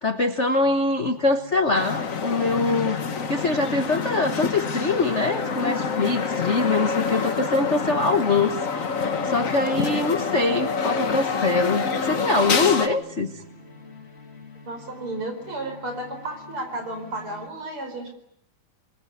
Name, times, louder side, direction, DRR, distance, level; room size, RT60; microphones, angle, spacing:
voice 1, 0.0-3.0 3.3-8.6 9.2-13.3, left 3 dB, 90° left, 8 dB, 0.6 m, -23 dB
sound 1, 0.6-17.5, left 3 dB, 20° left, 2.4 m, -47 dB
sound 2, 1.7-12.9, left 5 dB, 45° left, 1.0 m, -27 dB
voice 2, 14.7-18.1, right 2 dB, 40° right, 5 dB, 5.5 m, -33 dB
27.5 x 21.5 x 9.5 m, 0.74 s
omnidirectional pair, 3.6 m